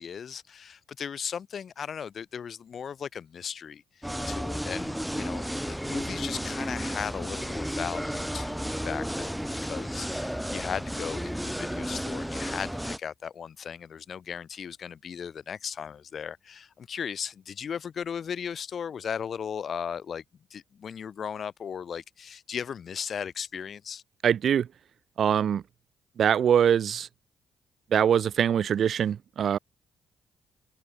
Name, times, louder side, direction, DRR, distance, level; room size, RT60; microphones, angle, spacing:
voice 1, 0.0-3.8 4.3-20.2 20.5-24.0, left 7 dB, 60° left, 4.5 m, -37 dB
sound 1, 4.0-13.0, equal, ahead, 1.0 m, -33 dB
voice 2, 24.2-24.7 25.2-25.6 26.2-27.1 27.9-29.6, right 8 dB, 65° right, 0.4 m, -23 dB
supercardioid pair, 60°, 0 cm